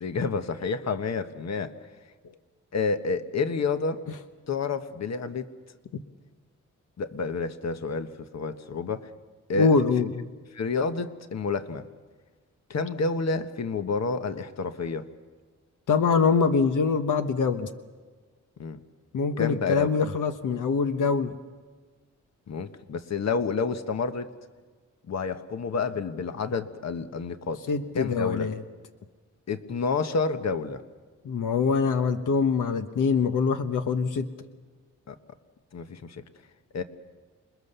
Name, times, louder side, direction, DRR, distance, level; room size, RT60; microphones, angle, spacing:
voice 1, 0.0-1.7 2.7-4.0 4.5-5.4 7.0-9.1 9.5-9.8 10.5-11.8 12.7-15.1 18.6-18.8 19.4-19.9 22.5-24.3 25.1-27.6 27.9-28.5 29.5-30.8 35.1-35.2 35.7-36.2 36.7-36.8, left 4 dB, 60° left, 9 dB, 1.3 m, -29 dB
voice 2, 9.5-10.3 15.9-17.7 19.1-21.4 27.7-28.6 31.2-34.3, left 5 dB, 80° left, 8 dB, 1.2 m, -24 dB
28.0 x 21.5 x 6.9 m, 1.4 s
wide cardioid pair, 100°, 31 cm